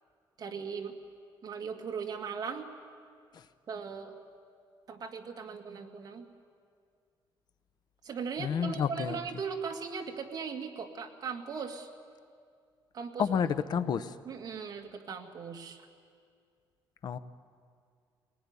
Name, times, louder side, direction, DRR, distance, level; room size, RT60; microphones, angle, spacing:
voice 1, 0.4-0.9 1.4-2.7 3.7-4.1 4.9-6.3 8.0-11.9 12.9-13.2 13.8-13.9 14.3-15.8, right 6 dB, 50° right, 3 dB, 2.2 m, -38 dB
voice 2, 8.4-9.2 13.2-14.2 17.0-17.2, left 7 dB, 55° left, 12 dB, 0.8 m, -30 dB
23.5 x 19.5 x 9.7 m, 2.2 s
cardioid pair, 145°, 9 cm